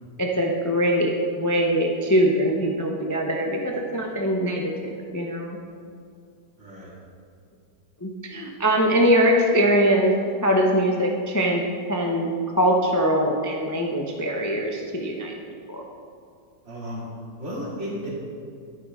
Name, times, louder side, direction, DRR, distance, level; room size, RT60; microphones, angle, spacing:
voice 1, 0.2-5.6 8.0-10.2 10.4-11.6 11.9-12.3 12.6-15.3 15.7-15.9, equal, 25° left, 0 dB, 0.3 m, -22 dB
voice 2, 6.6-6.9 16.6-17.0 17.4-18.1, equal, 40° right, -5 dB, 2.6 m, -33 dB
11.5 x 9.4 x 3.7 m, 2.3 s
omnidirectional pair, 1.9 m